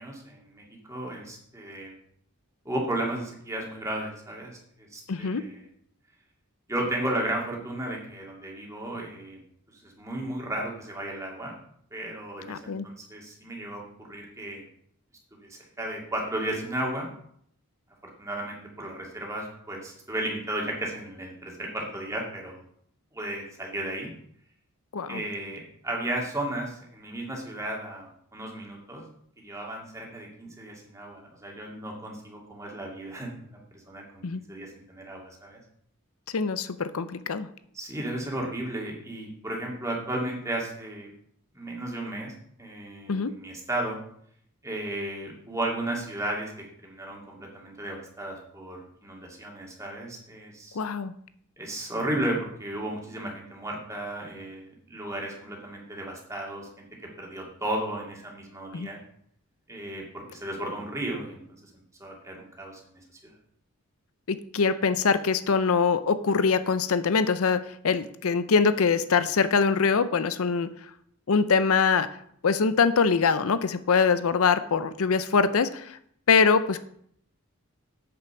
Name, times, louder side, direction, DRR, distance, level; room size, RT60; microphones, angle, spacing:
voice 1, 0.0-1.9 2.6-5.7 6.7-9.4 9.8-11.6 11.9-14.6 15.4-17.1 18.2-22.6 23.1-24.1 25.1-29.0 29.4-35.6 37.7-41.1 41.5-42.3 42.6-44.0 44.6-50.8 51.6-56.8 57.2-59.0 59.7-61.7 62.0-63.0, right 1 dB, 15° right, -1 dB, 2.3 m, -34 dB
voice 2, 5.1-5.5 12.5-12.8 24.9-25.2 34.2-34.4 36.3-37.5 43.1-43.3 50.7-51.1 58.7-58.9 64.3-70.7 71.3-72.1 72.4-76.0 76.3-76.8, left 5 dB, 70° left, 13 dB, 0.6 m, -23 dB
8.8 x 5.9 x 7.0 m, 0.67 s
head